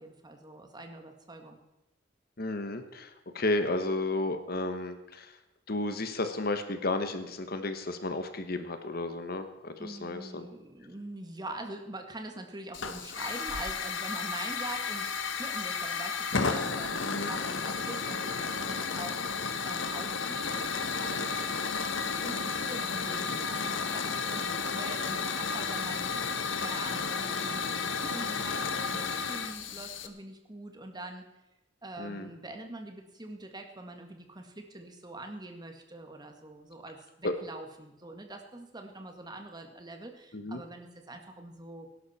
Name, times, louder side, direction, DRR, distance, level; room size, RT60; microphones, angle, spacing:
voice 1, 0.0-1.6 9.8-15.1 15.4-20.7 21.0-21.7 22.1-26.2 26.5-31.3 31.8-41.9, right 2 dB, 20° right, 4 dB, 1.8 m, -44 dB
voice 2, 2.4-3.1 3.3-5.3 5.7-10.5 17.0-17.3 32.0-32.3 37.2-37.3 40.3-40.6, left 2 dB, 55° left, 8 dB, 1.3 m, -32 dB
Hiss / Fire, 12.7-30.1, left 5 dB, 80° left, 1.2 m, -32 dB
18.5 x 11.5 x 4.4 m, 0.96 s
head